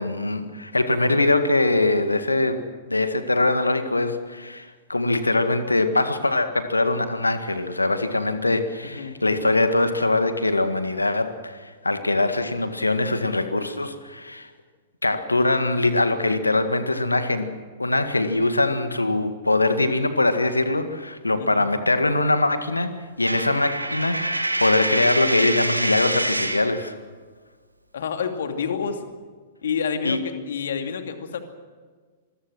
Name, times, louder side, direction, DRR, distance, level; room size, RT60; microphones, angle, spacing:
voice 1, 0.0-2.6 2.9-14.5 15.0-26.9 30.0-30.2, left 2 dB, 85° left, 9 dB, 1.8 m, -22 dB
voice 2, 8.8-9.2 21.4-21.7 27.9-29.1 29.6-31.4, left 6 dB, 60° left, 6 dB, 2.6 m, -28 dB
Coin (dropping), 23.2-26.7, right 1 dB, 90° right, 1.9 m, -26 dB
26.0 x 21.5 x 6.3 m, 1.5 s
figure-of-eight pair, 105°, 0 cm